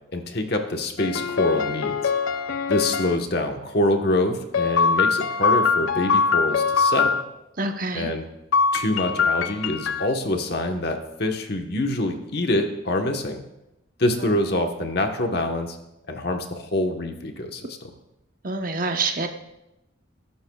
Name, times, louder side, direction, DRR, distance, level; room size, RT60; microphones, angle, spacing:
voice 1, 0.1-2.0 2.7-7.2 7.9-8.2 8.7-13.4 14.0-15.8 16.1-17.9, left 1 dB, 50° left, 3 dB, 1.2 m, -25 dB
sound 1, 1.0-3.2 4.5-7.2 8.5-10.1, left 5 dB, 85° left, 0.6 m, -22 dB
voice 2, 7.6-8.1 18.4-19.3, right 3 dB, 45° right, 5 dB, 0.9 m, -26 dB
20.0 x 11.5 x 2.4 m, 0.90 s
head